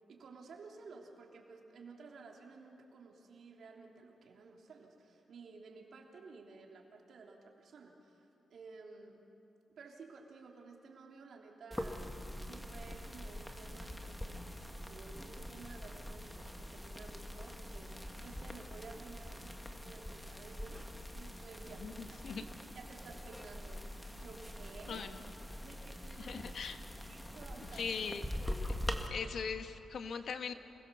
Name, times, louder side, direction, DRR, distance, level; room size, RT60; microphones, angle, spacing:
voice 1, 0.1-9.2 9.8-14.4 14.7-22.0 22.2-22.5 22.7-25.1 25.6-26.4 27.1-27.8, right 4 dB, 70° right, 0 dB, 3.3 m, -54 dB
sound 1, 11.7-29.1, left 1 dB, 5° left, 1.9 m, -44 dB
voice 2, 21.8-22.4 24.9-25.2 26.2-26.8 27.7-28.2 29.1-30.5, left 6 dB, 70° left, 8 dB, 1.4 m, -40 dB
28.0 x 21.0 x 7.0 m, 2.8 s
cardioid pair, 90°, 0 cm